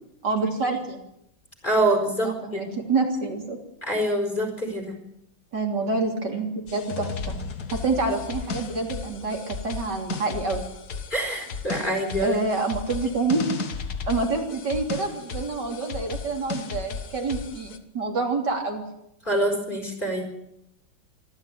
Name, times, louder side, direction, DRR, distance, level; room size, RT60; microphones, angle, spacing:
voice 1, 0.2-1.0 2.2-3.6 5.5-7.4 7.7-10.6 12.2-13.5 14.1-18.8, right 3 dB, 60° right, 2 dB, 3.8 m, -27 dB
voice 2, 1.6-2.6 3.8-4.9 11.1-12.4 19.2-20.3, right 1 dB, 25° left, 4 dB, 5.0 m, -25 dB
sound 1, 6.7-17.8, left 5 dB, 55° left, 2.0 m, -35 dB
25.5 x 14.0 x 9.4 m, 0.81 s
omnidirectional pair, 2.1 m